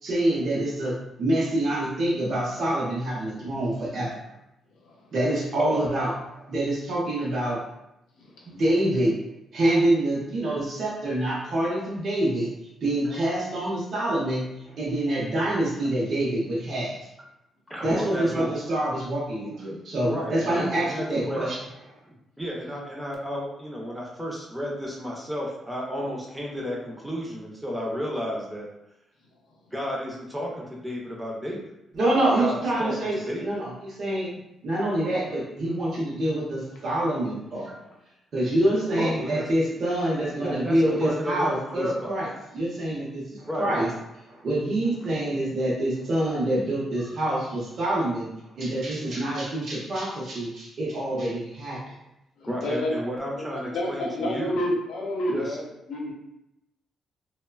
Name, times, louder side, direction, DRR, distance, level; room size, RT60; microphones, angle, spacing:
voice 1, 0.0-4.1 5.1-7.6 8.4-9.1 9.5-12.5 12.8-17.0 17.8-21.6 31.9-34.3 34.6-37.7 38.3-42.3 42.5-43.9 44.3-48.3 48.6-51.8, right 1 dB, 45° right, -6 dB, 0.7 m, -26 dB
voice 2, 5.6-5.9 13.0-13.2 17.7-18.5 20.0-21.6 22.0-28.7 29.7-31.6 32.4-32.9 33.3-33.6 39.0-39.5 40.2-42.2 43.5-43.7 44.8-44.9 52.5-54.6 55.3-55.6, equal, 5° right, -3 dB, 0.5 m, -32 dB
voice 3, 52.4-53.0 53.4-56.1, left 1 dB, 85° left, -2 dB, 0.6 m, -29 dB
3.0 x 2.1 x 2.3 m, 0.85 s
cardioid pair, 160°, 0 cm